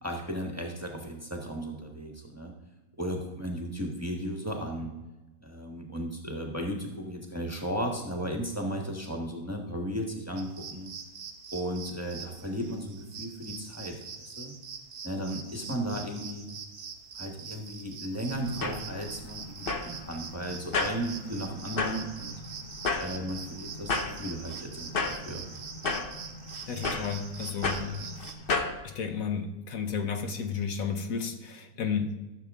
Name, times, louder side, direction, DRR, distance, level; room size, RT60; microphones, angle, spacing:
voice 1, 0.0-2.5 3.0-4.9 5.4-10.9 11.5-14.5 15.0-16.5 17.1-22.3 23.0-25.5, equal, 10° right, 1 dB, 1.1 m, -35 dB
sound 1, 10.4-28.3, right 6 dB, 85° right, 1.6 m, -44 dB
sound 2, 18.3-28.8, left 3 dB, 45° left, 0.9 m, -34 dB
voice 2, 26.7-28.1 28.8-32.1, left 6 dB, 70° left, 6 dB, 1.3 m, -32 dB
14.0 x 6.9 x 3.6 m, 1.1 s
omnidirectional pair, 1.5 m